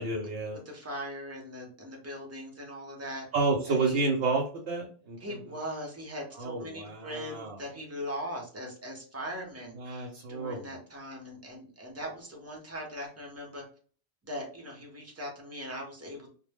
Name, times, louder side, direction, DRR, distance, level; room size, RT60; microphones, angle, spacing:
voice 1, 0.0-0.6 3.3-5.4 6.4-7.5 9.8-10.6, right 3 dB, 80° right, 0 dB, 0.9 m, -30 dB
voice 2, 0.5-3.3 3.7-4.0 5.2-13.6 14.2-16.3, equal, 15° right, -1 dB, 0.5 m, -40 dB
2.1 x 2.0 x 3.3 m, 0.42 s
omnidirectional pair, 1.1 m